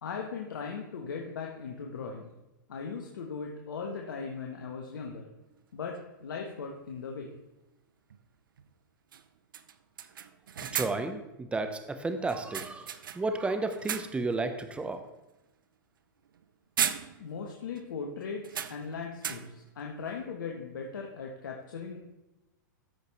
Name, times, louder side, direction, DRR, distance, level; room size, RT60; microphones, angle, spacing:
voice 1, 0.0-2.3 2.7-5.3 5.7-7.3 17.2-22.0, left 5 dB, 80° left, 1 dB, 1.2 m, -38 dB
sound 1, 5.9-6.0 8.1-8.2 8.6-8.7 9.1-9.3 9.5-11.2 12.3-13.4 13.7-14.4 14.8-15.0 16.3-16.4 16.8-17.5 17.8-17.9 18.4-19.7, right 8 dB, 85° right, 0.5 m, -36 dB
voice 2, 10.7-15.0, right 3 dB, 10° right, 7 dB, 0.9 m, -32 dB
13.5 x 5.2 x 3.2 m, 0.97 s
hypercardioid pair, 115°, 11 cm